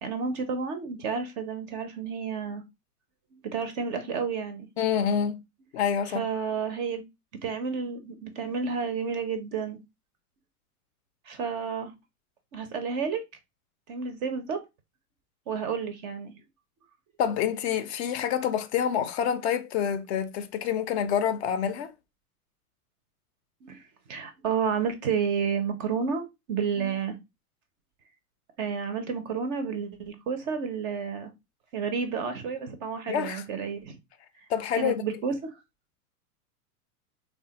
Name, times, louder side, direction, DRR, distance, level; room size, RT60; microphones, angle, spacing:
voice 1, 0.0-2.6 3.3-4.7 6.1-7.0 7.4-9.8 11.3-11.9 12.5-13.2 13.9-14.6 15.5-16.3 23.6-23.8 24.1-27.2 28.6-31.3 31.7-34.0 34.7-35.5, right 6 dB, 30° right, 0.4 m, -31 dB
voice 2, 4.8-5.4 5.7-6.3 17.2-21.9 26.8-26.9 33.1-33.4 34.5-35.0, left 8 dB, 50° left, 0.4 m, -27 dB
3.2 x 2.1 x 2.7 m
hypercardioid pair, 105°, 45 cm